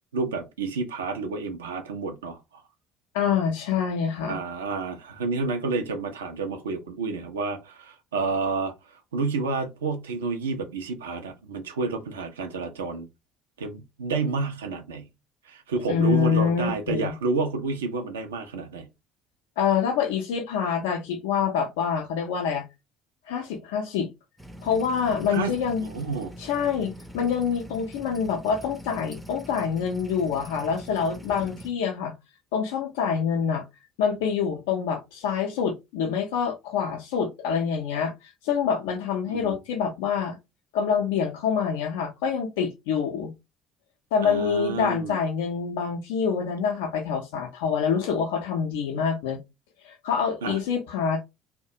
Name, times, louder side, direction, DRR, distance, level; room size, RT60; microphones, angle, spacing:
voice 1, 0.1-2.4 4.3-13.1 13.6-15.1 15.5-18.9 25.3-25.5 25.8-26.3 39.3-39.6 44.2-45.1 50.4-50.6, right 4 dB, 75° right, 0.4 m, -30 dB
voice 2, 3.1-4.4 15.9-17.1 19.6-22.6 23.3-24.1 24.6-25.9 26.4-32.1 32.5-33.6 34.0-40.4 40.7-43.3 44.1-49.4 49.8-51.2, left 7 dB, 65° left, 0.4 m, -26 dB
sound 1, 24.4-31.7, equal, 5° right, 0.4 m, -43 dB
2.3 x 2.0 x 2.6 m
figure-of-eight pair, 55°, 0 cm